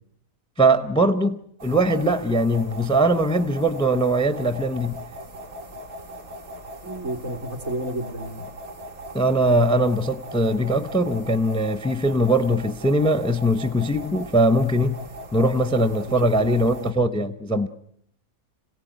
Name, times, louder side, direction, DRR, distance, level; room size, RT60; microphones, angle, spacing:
voice 1, 0.6-5.0 9.1-15.0 15.3-17.7, right 1 dB, 5° left, 0.6 m, -21 dB
sound 1, 1.6-16.9, equal, 85° right, 2.6 m, -39 dB
voice 2, 6.8-8.5 16.4-16.5 16.8-16.9, right 1 dB, 65° right, 4.1 m, -31 dB
26.5 x 17.0 x 9.1 m
omnidirectional pair, 1.5 m